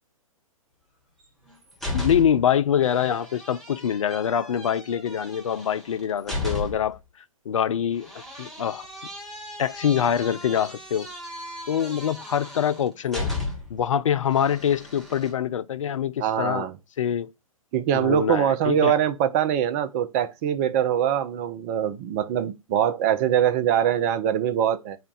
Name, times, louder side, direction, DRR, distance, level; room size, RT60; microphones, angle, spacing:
door slam, 1.2-2.5 2.8-7.0 8.0-13.8 14.3-15.3, left 2 dB, ahead, 1.1 m, -35 dB
voice 1, 1.9-7.0 7.5-8.1 8.4-8.9 9.6-11.1 11.7-13.3 13.7-16.7 17.0-17.3 17.9-18.9, left 9 dB, 60° left, 0.4 m, -24 dB
voice 2, 16.2-16.8 17.7-25.0, right 10 dB, 30° right, 0.5 m, -23 dB
4.4 x 2.2 x 3.9 m
figure-of-eight pair, 120°, 18 cm